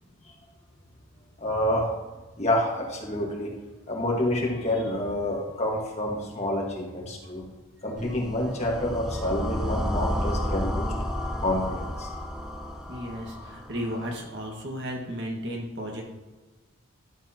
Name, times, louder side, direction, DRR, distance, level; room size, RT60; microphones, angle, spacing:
voice 1, 1.4-1.9 2.4-3.6 3.9-7.4 7.8-10.9 11.2-12.1, left 1 dB, 30° left, -1 dB, 1.5 m, -28 dB
sound 1, 8.0-14.1, equal, 5° right, 0.5 m, -32 dB
voice 2, 12.9-16.0, equal, 55° right, 0 dB, 1.6 m, -34 dB
12.0 x 6.8 x 2.9 m, 1.2 s
head